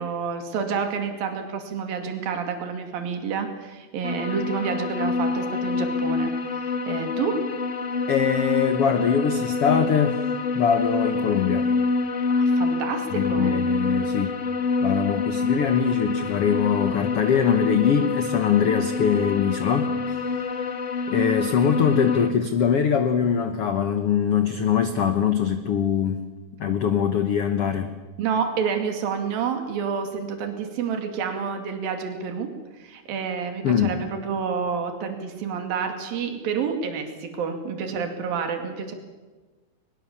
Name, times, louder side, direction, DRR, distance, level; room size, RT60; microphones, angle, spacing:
voice 1, 0.0-7.4 12.3-13.6 28.2-32.5 32.8-39.0, right 6 dB, 70° right, 5 dB, 4.1 m, -29 dB
sound 1, 4.0-22.3, left 4 dB, 90° left, 0.6 m, -26 dB
voice 2, 8.1-10.2 10.5-11.7 13.1-14.3 14.8-20.5 21.1-26.3 26.6-27.9 33.6-34.0, left 7 dB, 70° left, 8 dB, 1.4 m, -22 dB
23.0 x 21.5 x 7.3 m, 1.3 s
omnidirectional pair, 4.3 m